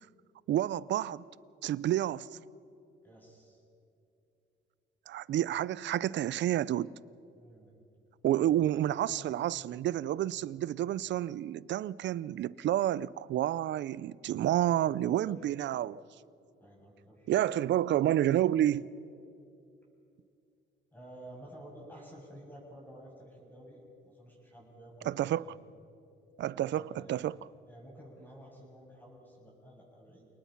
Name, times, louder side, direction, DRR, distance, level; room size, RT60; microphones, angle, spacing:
voice 1, 0.5-1.2 1.6-2.3 5.1-6.9 8.2-16.0 17.3-18.9 25.1-25.4 26.4-26.8 27.1-27.4, right 12 dB, 65° right, 0.5 m, -29 dB
voice 2, 3.0-3.6 7.3-7.7 8.4-8.8 9.1-9.8 14.8-15.4 16.6-17.3 20.9-25.6 26.5-27.2 27.7-30.3, right 1 dB, 10° left, 7.5 m, -52 dB
28.5 x 19.5 x 5.9 m
cardioid pair, 90°, 20 cm